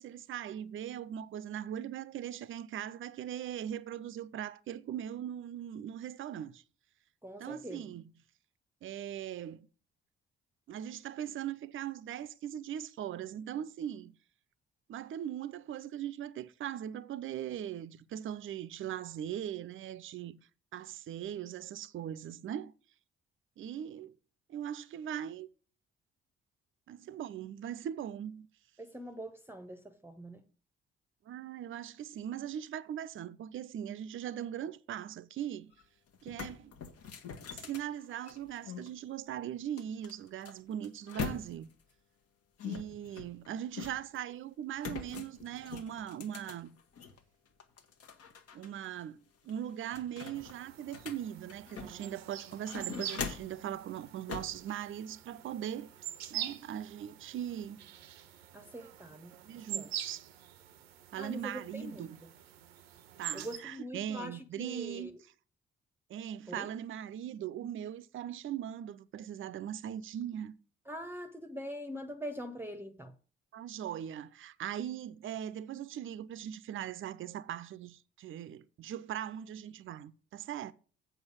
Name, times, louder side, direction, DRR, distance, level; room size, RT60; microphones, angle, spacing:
voice 1, 0.0-6.6 7.4-8.1 8.8-9.7 10.7-14.1 14.9-20.4 20.7-22.7 23.6-24.1 24.5-25.5 26.9-28.5 31.2-35.7 36.2-36.7 37.5-41.7 42.6-46.8 48.5-55.9 56.3-57.8 59.4-60.3 61.1-62.2 63.2-65.2 66.1-70.5 73.5-80.7, right 10 dB, 40° right, 0.6 m, -40 dB
voice 2, 7.2-8.0 28.8-30.5 58.5-59.9 61.2-62.3 63.3-65.2 66.5-66.7 70.9-73.1, equal, 5° right, 0.9 m, -43 dB
sound 1, 35.7-35.8 36.1-38.9 39.8-41.8 42.6-44.2 44.8-47.2 47.6-48.7 49.0-49.1 49.5-52.1 52.5-53.6 54.3-54.6, left 6 dB, 50° left, 1.2 m, -43 dB
sound 2, 50.3-63.6, right 11 dB, 80° right, 0.7 m, -45 dB
7.9 x 5.5 x 7.1 m
figure-of-eight pair, 40°, 30 cm